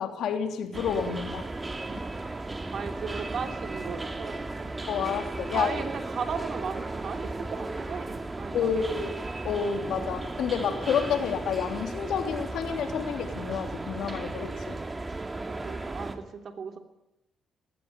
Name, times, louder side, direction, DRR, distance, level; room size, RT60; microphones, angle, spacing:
voice 1, 0.0-1.4 4.9-5.8 8.5-9.1 9.4-14.8, left 7 dB, 75° left, 6 dB, 3.0 m, -29 dB
sound 1, 0.7-16.2, right 2 dB, 20° right, 2.6 m, -35 dB
voice 2, 1.9-2.4 2.7-4.7 5.5-8.9 10.0-10.2 15.5-16.8, right 6 dB, 55° right, 6 dB, 3.1 m, -37 dB
20.0 x 16.5 x 9.8 m, 0.86 s
cardioid pair, 90°, 0 cm